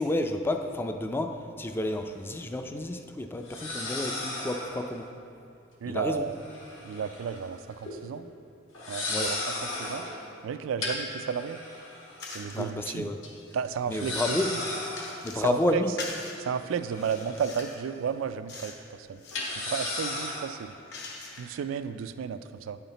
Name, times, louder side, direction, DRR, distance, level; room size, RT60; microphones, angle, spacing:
voice 1, 0.0-5.1 5.9-6.3 9.1-9.3 12.5-13.2 13.9-14.5 15.2-15.9, left 1 dB, 10° left, 6 dB, 0.3 m, -30 dB
sound 1, 1.8-1.9 3.4-4.9 6.3-7.4 7.7-8.0 8.7-10.2 10.8-12.5 12.9-13.0 13.2-13.3 13.9-15.5 16.4-17.8 18.1-18.3 19.3-20.6, left 2 dB, 70° left, 1.5 m, -35 dB
voice 2, 5.8-6.4 6.8-8.3 8.9-10.1 10.4-11.6 12.3-13.1 13.5-14.6 15.3-15.8 16.4-19.2 19.5-20.7 21.4-22.8, right 7 dB, 75° right, 12 dB, 0.3 m, -33 dB
sound 2, 12.2-12.7 13.2-15.5 16.0-16.4 16.9-17.8 18.5-18.8 19.1-19.6 20.2-21.6, left 3 dB, 55° left, 0.9 m, -43 dB
9.0 x 5.8 x 3.9 m, 2.6 s
head